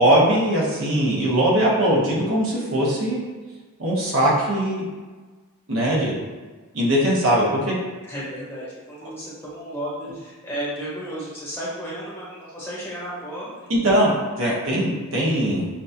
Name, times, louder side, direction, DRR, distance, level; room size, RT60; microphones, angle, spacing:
voice 1, 0.0-3.2 3.8-4.9 5.7-6.2 6.7-7.8 13.7-15.7, right 1 dB, 65° right, -4 dB, 1.0 m, -20 dB
voice 2, 8.0-13.7, equal, 10° left, -8 dB, 1.1 m, -33 dB
5.9 x 2.3 x 2.7 m, 1.3 s
head